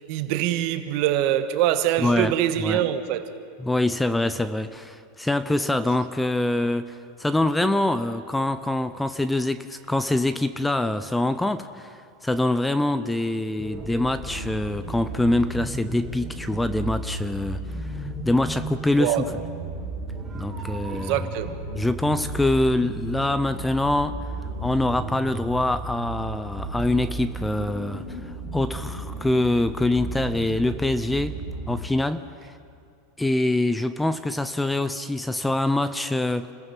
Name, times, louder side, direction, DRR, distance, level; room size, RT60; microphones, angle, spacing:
voice 1, 0.0-3.2 19.0-19.4 20.9-21.6, right 12 dB, 55° right, 1.4 m, -24 dB
voice 2, 2.0-2.8 3.6-17.9 18.3-19.4 20.3-21.3 21.7-24.2 24.6-31.4 31.7-32.3 33.2-36.5, left 2 dB, 5° left, 0.6 m, -25 dB
sound 1, 13.6-31.8, right 2 dB, 10° right, 4.9 m, -34 dB
29.0 x 15.5 x 5.9 m
supercardioid pair, 140°, 0 cm